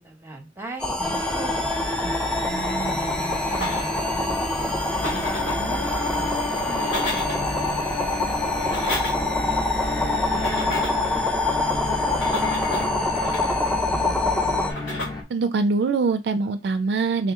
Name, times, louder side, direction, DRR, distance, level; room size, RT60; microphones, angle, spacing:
voice 1, 0.0-1.5 2.0-4.7 5.1-7.9 8.4-8.6 8.9-9.6 10.1-11.5 11.8-14.2, right 2 dB, 10° right, 0.8 m, -39 dB
sound 1, 0.8-14.7, left 2 dB, 5° left, 0.4 m, -25 dB
sound 2, 1.0-15.2, left 2 dB, 25° left, 0.9 m, -31 dB
sound 3, 3.5-4.2 4.8-5.7 6.6-7.5 8.4-9.4 10.3-11.1 12.0-13.8 14.6-15.1, left 1 dB, 80° left, 1.7 m, -33 dB
voice 2, 15.3-17.3, right 4 dB, 65° right, 0.3 m, -23 dB
3.6 x 2.8 x 3.5 m
head